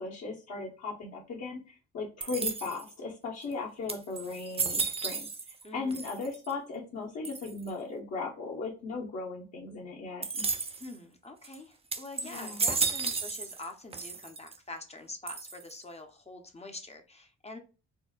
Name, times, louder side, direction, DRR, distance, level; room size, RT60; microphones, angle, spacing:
voice 1, 0.0-5.3 5.7-10.4 12.2-12.6, left 3 dB, 60° left, -5 dB, 1.1 m, -37 dB
sound 1, 2.2-2.9 3.5-3.6 3.9-5.6 5.9-6.5 7.2-7.7 10.2-10.9 11.4-11.6 11.9-13.7 13.9-14.6 15.3-15.8, right 4 dB, 20° right, 0.5 m, -33 dB
voice 2, 5.6-6.0 10.8-17.6, left 2 dB, 20° left, 5 dB, 0.7 m, -45 dB
4.4 x 2.1 x 2.3 m, 0.34 s
cardioid pair, 90°, 30 cm